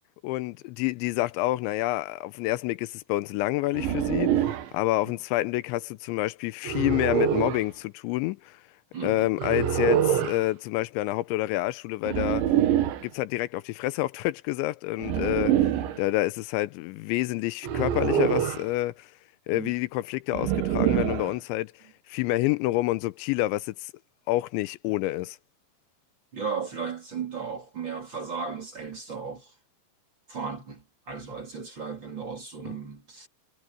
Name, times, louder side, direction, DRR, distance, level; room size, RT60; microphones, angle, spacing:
voice 1, 0.2-8.6 9.0-12.4 13.0-15.6 16.0-19.1 19.5-21.7 22.1-23.9 24.3-25.4, left 17 dB, 85° left, 3.1 m, -28 dB
sound 1, 3.7-4.7 6.7-7.6 9.4-10.4 12.0-13.1 15.0-16.0 17.6-18.7 20.3-21.3, right 10 dB, 85° right, 4.1 m, -25 dB
voice 2, 8.9-9.3 19.5-19.7 26.3-29.5 30.3-33.3, right 5 dB, 30° right, 3.2 m, -35 dB
omnidirectional pair, 5.2 m